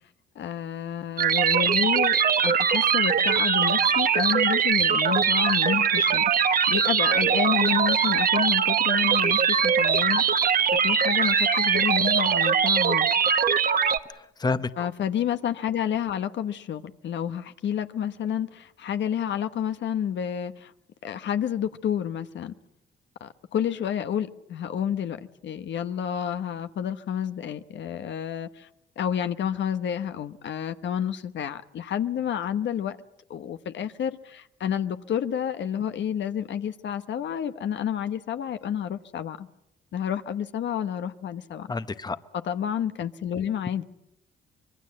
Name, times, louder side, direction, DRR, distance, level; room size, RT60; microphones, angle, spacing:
voice 1, 0.3-10.4 10.7-13.1 14.8-20.7 21.0-22.5 23.2-28.7 29.0-33.0 33.3-39.5 39.9-41.7 42.4-43.8, left 9 dB, 65° left, 1.1 m, -30 dB
sound 1, 1.2-14.0, right 7 dB, 45° right, 1.2 m, -22 dB
voice 2, 14.1-14.9 41.7-42.2, left 3 dB, 20° left, 1.0 m, -29 dB
25.5 x 22.0 x 7.6 m
cardioid pair, 90°, 20 cm